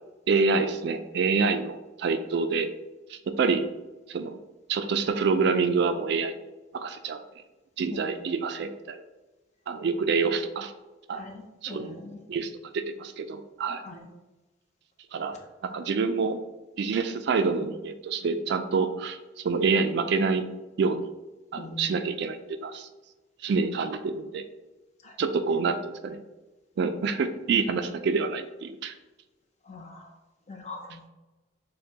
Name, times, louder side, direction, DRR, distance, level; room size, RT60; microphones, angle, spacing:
voice 1, 0.3-2.7 3.1-3.7 4.1-4.4 4.7-6.3 6.7-7.2 7.8-9.0 9.7-10.7 11.1-11.2 11.6-12.0 12.3-13.8 15.1-15.4 15.6-16.4 16.8-20.5 20.8-21.1 21.5-22.9 23.4-24.4 25.2-26.2 26.8-28.9, right 4 dB, 60° right, 9 dB, 0.3 m, -27 dB
voice 2, 11.1-12.2 13.8-14.1 21.6-21.9 25.0-25.2 29.6-30.1 30.5-31.1, left 2 dB, 40° left, 2 dB, 0.6 m, -42 dB
6.5 x 2.2 x 2.8 m, 1.1 s
head